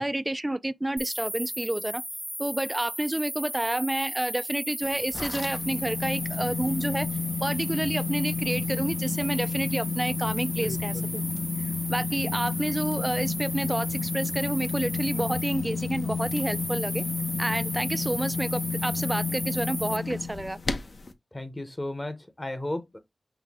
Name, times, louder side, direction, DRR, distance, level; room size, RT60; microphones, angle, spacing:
voice 1, 0.0-2.0 2.4-7.1 7.4-11.2 11.9-17.0 17.4-20.6, right 1 dB, 20° right, 0.3 m, -29 dB
sound 1, 1.0-20.0, equal, ahead, 0.8 m, -36 dB
sound 2, 4.8-21.1, left 5 dB, 60° left, 0.6 m, -31 dB
voice 2, 10.6-11.2 21.3-23.0, left 1 dB, 30° left, 0.8 m, -35 dB
5.8 x 2.1 x 3.5 m
wide cardioid pair, 65°, 0 cm